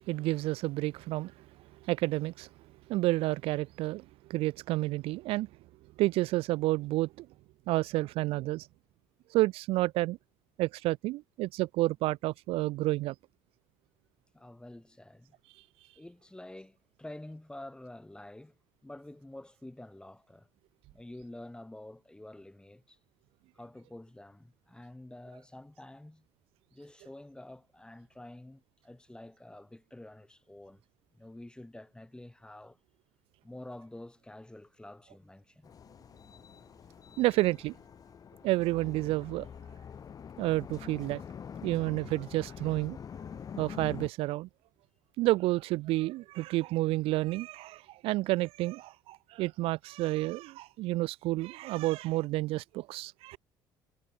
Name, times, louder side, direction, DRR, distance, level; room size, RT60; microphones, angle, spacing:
voice 1, 0.1-1.3 1.8-2.5 2.9-4.0 4.3-5.5 6.0-7.3 7.7-8.7 9.3-10.2 10.6-13.1 37.2-37.8 38.4-39.5 40.4-41.2 41.6-43.0 43.6-44.5 45.2-53.4, right 19 dB, 65° right, 0.4 m, -30 dB
voice 2, 14.3-15.3 16.0-18.5 18.8-20.5 20.9-23.0 23.5-26.3 26.7-30.8 31.1-32.8 33.4-35.7, left 1 dB, 10° left, 1.5 m, -48 dB
sound 1, 35.6-44.1, left 7 dB, 35° left, 0.5 m, -45 dB
hypercardioid pair, 65°, 10 cm